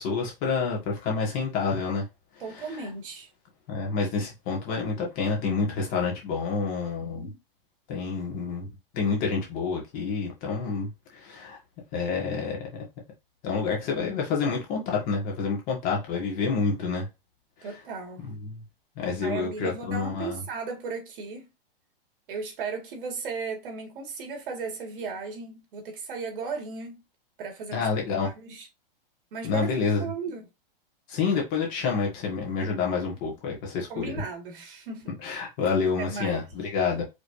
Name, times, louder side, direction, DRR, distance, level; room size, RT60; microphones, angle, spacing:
voice 1, 0.0-2.0 2.5-2.9 3.7-7.3 7.9-8.7 8.9-11.6 11.9-12.8 13.4-17.1 17.6-17.7 18.3-18.6 19.0-20.4 27.7-28.3 29.4-30.0 31.1-34.1 35.2-37.0, left 5 dB, 30° left, 2.0 m, -28 dB
voice 2, 2.4-3.3 7.0-7.4 17.6-18.3 19.2-21.5 22.3-27.0 27.4-27.8 28.2-28.7 29.3-29.7 30.0-30.4 33.9-35.1 36.0-36.4, right 4 dB, 60° right, 2.2 m, -36 dB
5.0 x 3.9 x 2.7 m
hypercardioid pair, 160°, 29 cm